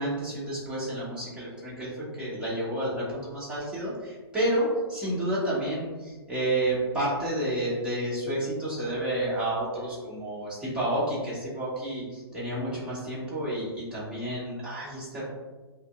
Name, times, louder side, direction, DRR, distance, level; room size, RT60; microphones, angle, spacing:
voice 1, 0.0-15.2, right 1 dB, 5° right, -8 dB, 1.2 m, -30 dB
5.4 x 2.0 x 2.5 m, 1.3 s
figure-of-eight pair, 120°, 14 cm